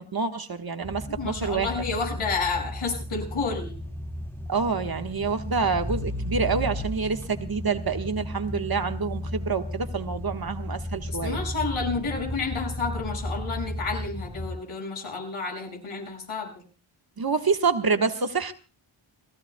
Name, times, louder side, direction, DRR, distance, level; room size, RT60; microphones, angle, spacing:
voice 1, 0.0-1.8 4.5-11.4 17.2-18.5, right 5 dB, 45° right, 7 dB, 1.4 m, -27 dB
sound 1, 0.8-14.5, left 1 dB, 5° left, 2.1 m, -34 dB
voice 2, 1.2-3.8 11.1-16.5, left 4 dB, 80° left, 1 dB, 6.3 m, -30 dB
30.0 x 16.5 x 2.3 m, 0.34 s
wide cardioid pair, 95°, 50 cm